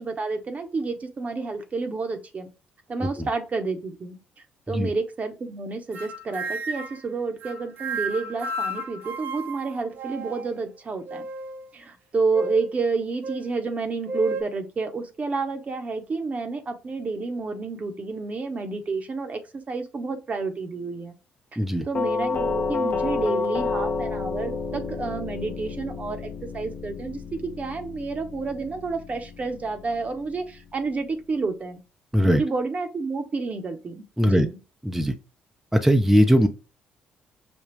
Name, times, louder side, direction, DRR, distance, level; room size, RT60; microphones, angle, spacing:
voice 1, 0.0-2.5 2.9-4.2 4.7-11.2 11.7-21.1 21.5-21.6 21.8-31.8 32.2-34.6, right 4 dB, 40° right, 6 dB, 1.0 m, -30 dB
sound 1, 5.9-7.0 7.4-10.6 11.1-11.7 12.3-12.7 13.2-13.4 14.1-14.4, right 2 dB, 60° right, 0.8 m, -33 dB
voice 2, 21.6-21.9 32.1-32.4 34.2-34.5 34.8-35.1 35.7-36.5, equal, 5° right, 4 dB, 0.7 m, -20 dB
Doorbell, 21.9-30.8, left 4 dB, 40° left, 0.8 m, -30 dB
5.2 x 2.3 x 3.1 m, 0.31 s
hypercardioid pair, 50°, 4 cm